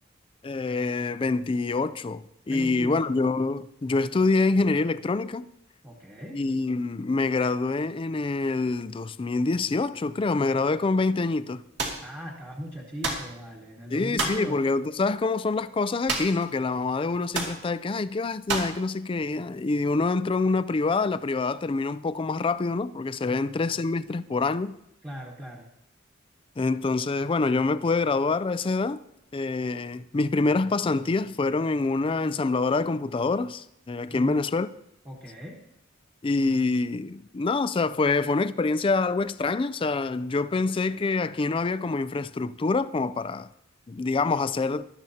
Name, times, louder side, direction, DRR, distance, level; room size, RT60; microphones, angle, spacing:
voice 1, 0.4-5.5 6.3-11.6 13.9-24.8 26.6-29.0 29.3-34.7 36.2-43.5 43.9-44.9, left 3 dB, 25° left, 0.4 m, -26 dB
voice 2, 2.5-3.2 5.8-6.4 12.0-14.6 25.0-25.7 34.1-34.4 35.0-35.6, equal, 15° right, 1.3 m, -38 dB
sound 1, 11.8-12.0 13.0-13.3 14.2-14.5 16.1-16.5 16.7-16.8 17.3-17.6 18.5-18.8, right 3 dB, 60° right, 2.3 m, -29 dB
18.0 x 12.0 x 2.8 m
head